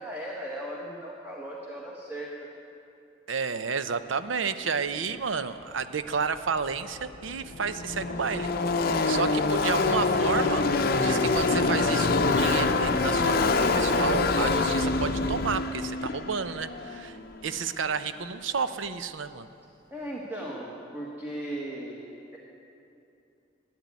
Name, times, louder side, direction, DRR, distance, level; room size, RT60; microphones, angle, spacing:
voice 1, 0.0-2.5 19.9-22.4, right 1 dB, 10° right, -4 dB, 1.4 m, -37 dB
voice 2, 3.3-8.5 8.9-17.2 17.4-19.5, right 5 dB, 80° right, 11 dB, 0.6 m, -31 dB
Car passing by / Race car auto racing, 6.7-6.8 7.0-17.6, left 3 dB, 50° left, 0.6 m, -25 dB
13.0 x 9.6 x 9.5 m, 2.7 s
head